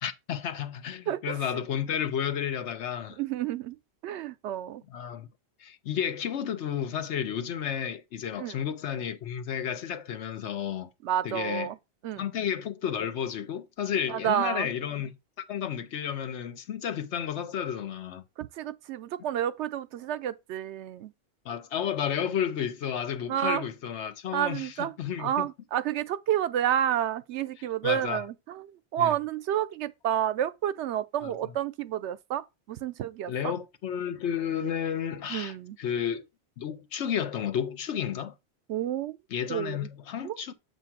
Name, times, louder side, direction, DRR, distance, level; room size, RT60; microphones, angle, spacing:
voice 1, 0.0-3.2 4.9-5.3 5.6-10.9 11.2-11.7 12.2-15.2 15.5-18.2 21.4-25.5 27.8-28.2 29.0-29.1 31.2-31.5 33.3-35.5 35.8-36.3 36.6-38.3 39.3-40.5, left 8 dB, 90° left, 1.1 m, -32 dB
voice 2, 1.1-1.6 3.2-3.8 4.0-4.8 8.4-8.6 11.0-11.8 12.0-12.2 14.1-14.7 18.4-21.1 23.3-23.6 24.3-28.7 28.9-33.5 35.3-35.8 38.7-39.2 39.5-39.9 40.2-40.4, right 11 dB, 85° right, 0.9 m, -30 dB
7.5 x 3.0 x 5.8 m
omnidirectional pair, 1.1 m